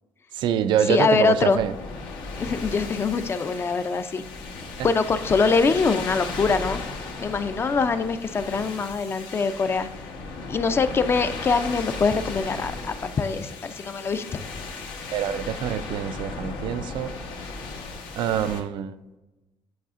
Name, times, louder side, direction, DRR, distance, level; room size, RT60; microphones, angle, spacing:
voice 1, 0.3-1.7 15.1-17.1 18.2-19.0, right 9 dB, 65° right, 12 dB, 0.4 m, -25 dB
voice 2, 0.9-1.6 2.4-4.2 4.8-6.8 7.2-9.9 10.5-14.4, left 4 dB, 30° left, 11 dB, 0.4 m, -23 dB
sound 1, 1.5-18.6, left 3 dB, 90° left, 1.2 m, -36 dB
9.3 x 4.8 x 2.5 m, 1.1 s
cardioid pair, 130°, 9 cm